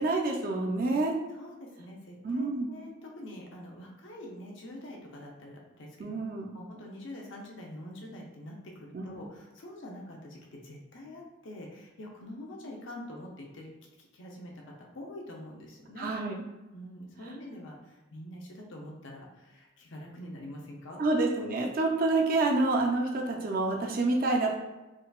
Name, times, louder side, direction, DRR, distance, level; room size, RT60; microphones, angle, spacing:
voice 1, 0.0-1.1 2.2-2.7 6.0-6.5 8.9-9.1 16.0-16.4 21.0-24.5, right 2 dB, 45° right, 1 dB, 0.5 m, -28 dB
voice 2, 1.3-6.2 6.5-13.7 14.1-14.5 14.8-16.1 16.7-21.0, left 1 dB, 65° left, -1 dB, 0.6 m, -45 dB
3.8 x 2.2 x 2.3 m, 1.1 s
head